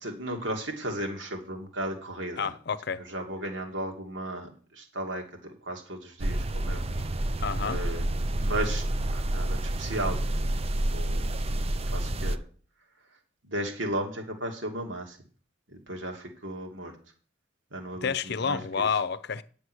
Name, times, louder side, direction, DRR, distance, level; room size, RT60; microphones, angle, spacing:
voice 1, 0.0-2.5 3.1-6.8 7.6-8.0 8.3-8.8 9.1-10.2 10.9-11.2 11.9-12.4 13.5-15.2 15.7-16.9 17.7-18.8, right 1 dB, 80° right, 2.6 m, -35 dB
voice 2, 2.4-3.0 7.4-7.8 18.0-19.4, left 6 dB, 60° left, 0.6 m, -29 dB
sound 1, 6.2-12.4, right 1 dB, 35° right, 0.5 m, -29 dB
9.8 x 6.9 x 6.3 m
head